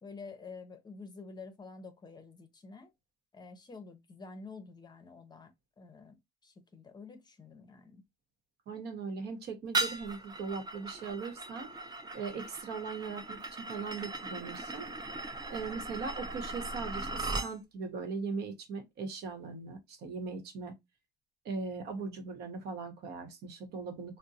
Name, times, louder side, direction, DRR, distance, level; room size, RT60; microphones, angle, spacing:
voice 1, 0.0-2.9 3.3-8.0, left 4 dB, 25° left, 0.6 m, -49 dB
voice 2, 8.7-11.7 12.1-14.9 15.5-20.7 21.4-24.2, right 4 dB, 75° right, 0.9 m, -39 dB
sound 1, 9.7-17.5, right 3 dB, 25° right, 0.6 m, -38 dB
3.6 x 2.0 x 2.7 m
cardioid pair, 110°, 17 cm